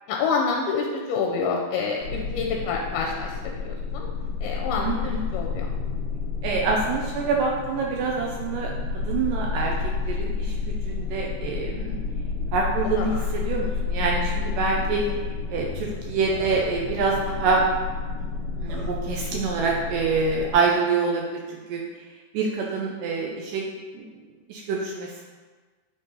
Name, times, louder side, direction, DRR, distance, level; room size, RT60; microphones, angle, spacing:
voice 1, 0.1-4.1 4.4-5.7 13.0-13.2 14.0-14.4, left 5 dB, 85° left, 0 dB, 2.6 m, -28 dB
sound 1, 2.0-20.5, left 4 dB, 45° left, 2.7 m, -30 dB
voice 2, 4.8-5.2 6.4-9.7 10.0-12.0 12.5-15.0 15.5-17.7 18.5-21.8 22.3-23.6 23.9-24.1 24.5-25.2, right 4 dB, 85° right, -1 dB, 2.0 m, -26 dB
Burping eructation, 14.6-14.7 15.0-15.2 15.9-16.0 16.3-16.8 18.2-18.3 18.7-19.0, equal, 70° right, 3.7 m, -43 dB
8.8 x 3.9 x 4.0 m, 1.4 s
omnidirectional pair, 4.5 m